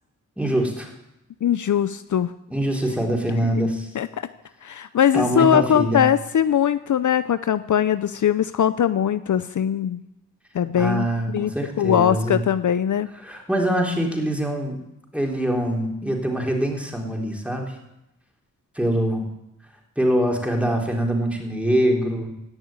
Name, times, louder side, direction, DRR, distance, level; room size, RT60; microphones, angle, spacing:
voice 1, 0.4-0.9 2.5-3.9 5.1-6.0 10.8-12.4 13.2-14.8 15.1-17.7 18.8-19.2 20.0-22.3, right 1 dB, 5° right, 0 dB, 3.8 m, -24 dB
voice 2, 1.4-2.3 3.9-4.2 4.6-10.0 10.5-11.5 11.8-13.1, left 9 dB, 65° left, 13 dB, 0.6 m, -21 dB
17.0 x 6.9 x 8.9 m, 0.90 s
cardioid pair, 50°, 33 cm